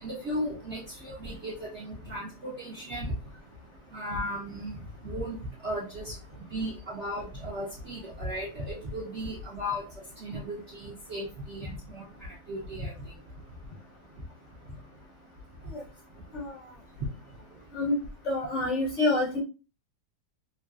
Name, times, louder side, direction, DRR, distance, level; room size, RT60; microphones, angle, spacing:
voice 1, 0.0-3.1 3.9-4.7 5.0-5.4 5.6-6.1 6.5-9.8 10.2-12.9, equal, 60° right, -6 dB, 0.7 m, -35 dB
voice 2, 16.3-16.7 17.7-18.0 18.2-19.4, left 2 dB, 55° left, -2 dB, 0.8 m, -27 dB
3.1 x 2.7 x 2.3 m, 0.33 s
omnidirectional pair, 2.1 m